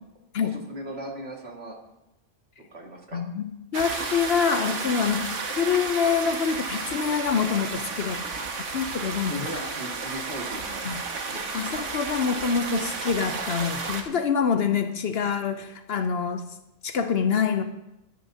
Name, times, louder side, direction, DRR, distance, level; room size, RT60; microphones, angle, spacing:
voice 1, 0.4-1.8 2.7-3.2 8.4-8.5 9.3-10.8 11.3-11.5, equal, 60° right, -1 dB, 2.3 m, -37 dB
voice 2, 3.1-8.2 8.7-9.3 10.8-11.0 11.5-16.5 16.8-17.6, left 6 dB, 60° left, 9 dB, 0.9 m, -26 dB
sound 1, 3.7-14.0, right 4 dB, 80° right, 1.5 m, -32 dB
16.0 x 10.5 x 2.8 m, 0.91 s
omnidirectional pair, 1.2 m